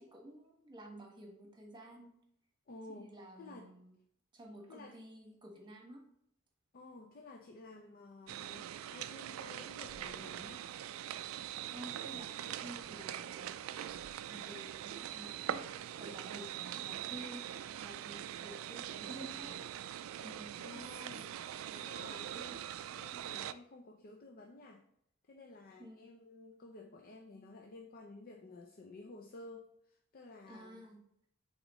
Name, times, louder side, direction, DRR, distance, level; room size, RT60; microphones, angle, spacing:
voice 1, 0.0-2.1 2.9-4.0 4.3-6.0 11.7-13.5 14.3-15.6 16.0-17.4 17.8-19.7 20.1-20.8 25.8-26.1 30.5-31.0, right 1 dB, 25° right, 1 dB, 1.2 m, -51 dB
voice 2, 2.7-3.7 4.7-5.0 6.7-10.7 20.6-24.8 25.2-30.9, left 2 dB, 45° left, 3 dB, 0.5 m, -53 dB
sound 1, 8.3-23.5, right 10 dB, 85° right, 0.3 m, -43 dB
8.9 x 3.7 x 3.1 m, 0.72 s
head